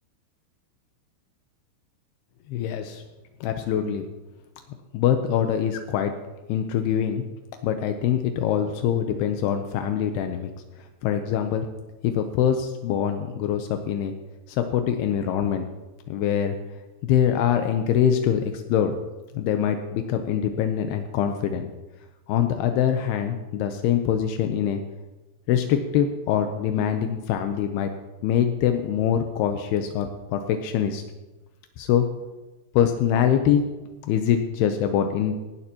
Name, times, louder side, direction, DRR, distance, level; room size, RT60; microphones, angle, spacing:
voice 1, 2.5-3.0 3.4-4.0 4.9-6.1 6.5-7.2 7.6-10.5 10.8-11.7 12.0-14.1 14.5-15.6 16.1-16.6 17.0-18.9 19.3-21.7 22.3-24.8 25.5-27.9 28.2-31.0 31.8-32.1 32.7-33.6 34.1-35.4, left 9 dB, 85° left, 6 dB, 2.3 m, -24 dB
18.0 x 15.0 x 3.0 m, 1.1 s
omnidirectional pair, 5.6 m